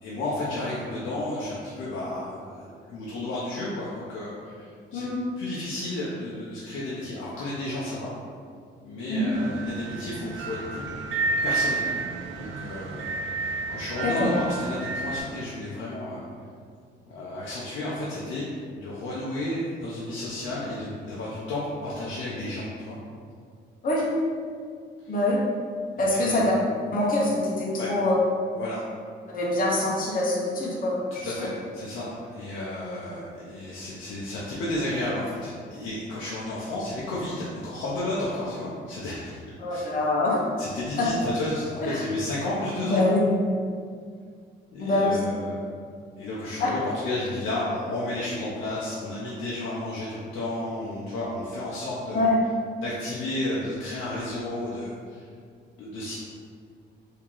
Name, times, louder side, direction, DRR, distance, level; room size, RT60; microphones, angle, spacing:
voice 1, 0.0-5.1 5.4-8.1 8.8-10.8 11.4-16.2 17.1-23.0 25.0-25.2 25.9-26.4 27.8-27.9 28.6-28.8 31.1-39.9 40.6-43.1 44.7-45.6 46.2-52.3 52.8-55.2 55.8-56.2, left 1 dB, 85° left, -7 dB, 0.6 m, -32 dB
sound 1, 9.3-15.2, right 3 dB, 75° right, 0.6 m, -31 dB
voice 2, 25.1-25.4 26.0-26.4 26.9-28.2 29.3-31.3 39.6-40.4 41.0-41.1 41.8-42.0 42.8-43.3 44.8-45.2 46.6-46.7 52.1-52.4, left 2 dB, 45° left, -4 dB, 0.9 m, -24 dB
2.9 x 2.8 x 3.7 m, 2.1 s
cardioid pair, 90°, 20 cm